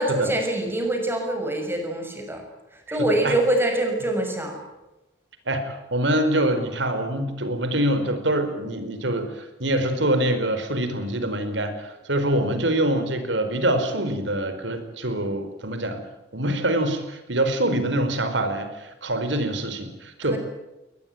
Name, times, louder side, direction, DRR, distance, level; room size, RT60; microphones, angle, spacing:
voice 1, 0.0-2.4 2.7-4.6 20.3-20.4, right 1 dB, 15° right, 3 dB, 6.5 m, -24 dB
voice 2, 2.9-3.3 5.5-16.0 16.3-20.4, right 1 dB, 80° right, 9 dB, 4.4 m, -25 dB
22.0 x 20.0 x 9.2 m, 0.98 s
head